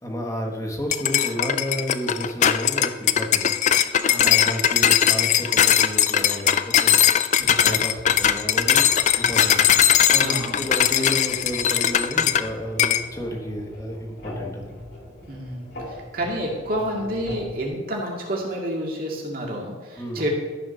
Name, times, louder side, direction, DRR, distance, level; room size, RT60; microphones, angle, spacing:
voice 1, 0.0-3.6 4.2-7.0 7.4-9.7 10.1-14.7 20.0-20.2, equal, 15° left, 0 dB, 1.3 m, -31 dB
sound 1, 0.9-12.5 12.8-13.1, left 10 dB, 40° left, 0.3 m, -19 dB
voice 2, 4.1-4.6 10.2-10.5 15.3-20.3, equal, 50° right, -1 dB, 2.1 m, -29 dB
sound 2, 7.4-17.7, left 1 dB, 65° left, 2.2 m, -40 dB
13.0 x 4.9 x 5.6 m, 1.3 s
head